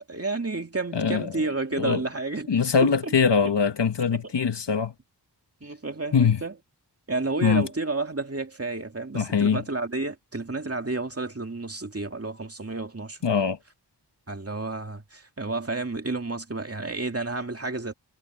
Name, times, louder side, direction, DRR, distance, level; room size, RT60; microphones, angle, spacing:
voice 1, 0.0-2.5 2.8-3.1 3.4-3.5 4.1-4.3 5.6-6.6 7.1-13.2 14.3-17.9, right 3 dB, 35° right, 2.5 m, -31 dB
voice 2, 0.9-1.4 1.8-2.0 2.5-4.9 6.1-6.4 7.4-7.7 9.1-9.6 13.2-13.6, left 6 dB, 90° left, 1.3 m, -22 dB
wide cardioid pair, 60°, 41 cm